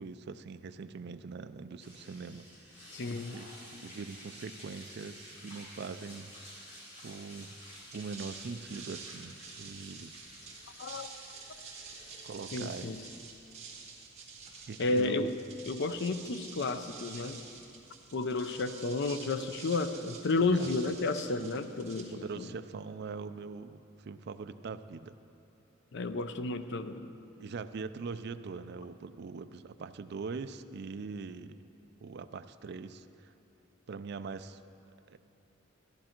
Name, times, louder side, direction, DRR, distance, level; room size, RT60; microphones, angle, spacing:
voice 1, 0.0-2.5 2.8-2.9 3.3-6.3 6.7-7.5 7.9-10.1 11.9-12.9 14.7-15.3 20.4-20.7 21.4-21.5 22.1-25.2 27.4-31.6 32.0-33.3 33.9-34.6 35.1-35.2, right 4 dB, 55° right, 11 dB, 0.4 m, -42 dB
sound 1, 1.8-15.3, equal, 40° left, 3.1 m, -52 dB
voice 2, 2.9-3.4 10.8-11.1 12.5-13.0 14.8-15.4 15.6-17.4 18.1-22.5 25.9-27.1, left 3 dB, 60° left, 10 dB, 0.5 m, -32 dB
sound 2, 7.8-22.6, right 5 dB, 35° right, 1.6 m, -49 dB
13.5 x 11.0 x 4.4 m, 2.8 s
head